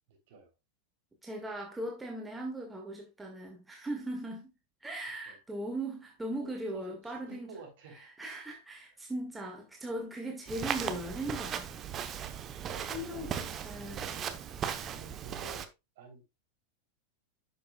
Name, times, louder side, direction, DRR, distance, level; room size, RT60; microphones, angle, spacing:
voice 1, 0.1-0.5 5.3-5.4 6.4-8.1 12.5-13.5 13.8-14.5 14.8-15.7 16.0-16.2, right 3 dB, 50° right, 3.4 m, -51 dB
voice 2, 1.2-4.5 4.8-7.5 8.2-11.7 12.9-14.1, right 1 dB, 10° right, 1.9 m, -39 dB
Walk footsteps, 10.5-15.6, right 8 dB, 30° right, 0.9 m, -37 dB
10.5 x 6.6 x 2.3 m
figure-of-eight pair, 90°, 0 cm